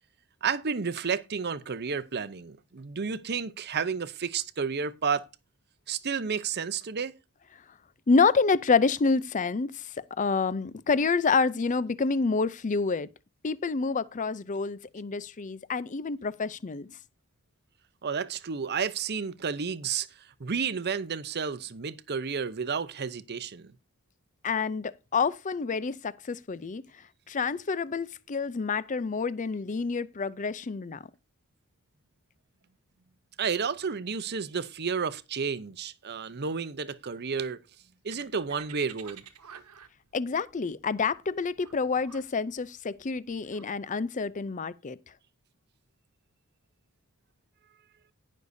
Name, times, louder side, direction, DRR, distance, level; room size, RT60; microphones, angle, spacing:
voice 1, 0.4-5.3 5.9-7.1 18.0-20.1 20.4-23.7 33.4-37.6 38.0-39.2 39.5-39.6, right 6 dB, 45° right, 0.7 m, -31 dB
voice 2, 8.1-13.1 13.4-16.9 24.4-26.8 27.3-31.0 40.1-45.0, left 4 dB, 35° left, 0.5 m, -28 dB
sound 1, 38.1-43.6, right 8 dB, 90° right, 1.2 m, -50 dB
18.0 x 6.4 x 2.7 m
head